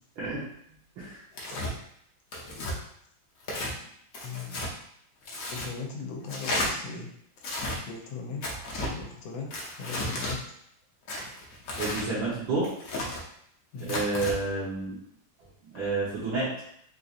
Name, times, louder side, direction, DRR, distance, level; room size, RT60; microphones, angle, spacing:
Tearing, 1.3-1.7 2.3-2.8 3.4-3.7 4.1-4.7 5.3-5.7 6.3-6.7 7.4-7.8 8.4-8.9 9.5-10.4 11.1-12.1 12.6-13.2 13.8-14.3, left 1 dB, 60° left, 0.9 m, -33 dB
voice 1, 4.2-4.6 5.5-7.1 7.9-8.4 8.9-10.4 13.7-14.0, left 5 dB, 80° left, 0 dB, 1.4 m, -38 dB
voice 2, 11.8-12.7 13.9-15.0 15.7-16.5, right 3 dB, 70° right, -8 dB, 1.7 m, -29 dB
4.4 x 2.6 x 2.4 m, 0.69 s
omnidirectional pair, 2.2 m